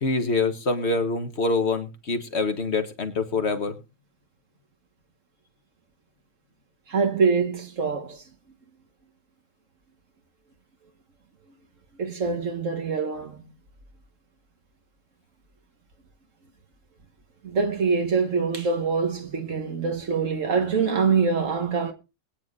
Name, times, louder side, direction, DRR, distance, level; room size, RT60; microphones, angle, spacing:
voice 1, 0.0-3.7, left 3 dB, 60° left, 1.7 m, -25 dB
voice 2, 6.9-8.2 12.0-13.5 17.4-21.9, right 5 dB, 80° right, 2.0 m, -24 dB
22.0 x 9.3 x 2.6 m
omnidirectional pair, 1.3 m